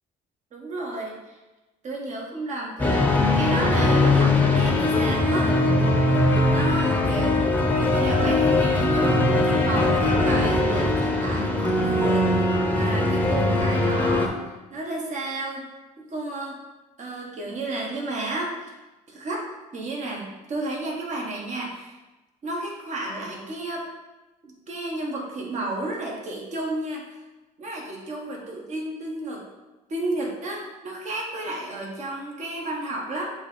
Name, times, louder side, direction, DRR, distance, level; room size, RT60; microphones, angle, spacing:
voice 1, 0.5-1.4 1.8-3.1 3.4-6.2 6.5-7.5 7.7-15.6 16.0-16.6 17.0-18.7 19.1-19.5 19.7-22.0 22.4-23.9 24.4-27.1 27.6-29.4 29.9-33.3, right 2 dB, 45° right, -1 dB, 1.5 m, -32 dB
sound 1, 2.8-14.3, left 2 dB, 10° left, 0.8 m, -21 dB
6.5 x 3.0 x 5.2 m, 1.1 s
cardioid pair, 110°, 17 cm